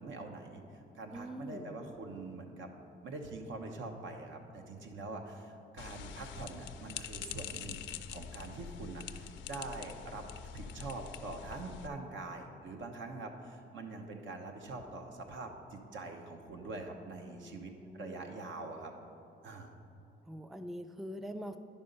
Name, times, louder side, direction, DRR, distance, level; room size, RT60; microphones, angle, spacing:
voice 1, 0.0-2.7 3.0-10.3 10.5-18.9 19.4-19.7, right 3 dB, 75° right, 4 dB, 1.0 m, -44 dB
voice 2, 1.1-1.7 17.2-18.3 20.3-21.6, equal, ahead, 9 dB, 0.3 m, -44 dB
sound 1, 5.8-11.9, left 9 dB, 75° left, 0.5 m, -45 dB
10.0 x 5.5 x 5.3 m, 2.7 s
cardioid pair, 90°, 20 cm